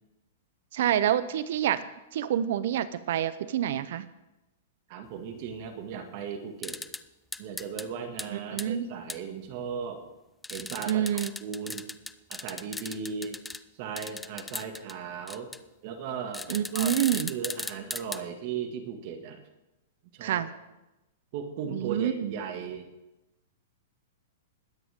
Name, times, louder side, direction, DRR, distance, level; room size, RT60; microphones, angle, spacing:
voice 1, 0.7-1.8 2.1-4.1 8.3-8.9 10.9-11.3 16.5-17.3 20.2-20.5 21.7-22.3, right 10 dB, 65° right, 15 dB, 0.7 m, -27 dB
voice 2, 4.9-6.8 7.4-10.0 10.5-11.0 11.4-11.8 12.3-13.4 13.8-15.5 15.8-19.4 20.1-20.4 21.3-22.9, right 6 dB, 50° right, 5 dB, 2.1 m, -37 dB
sound 1, 6.6-7.0 7.3-7.9 8.2-8.3 8.6-8.7 9.1-9.2 10.4-13.6 14.0-14.9 15.3-15.6 16.3-18.2, left 2 dB, 5° left, 0.4 m, -37 dB
21.0 x 9.6 x 3.7 m, 0.99 s
hypercardioid pair, 135°, 0 cm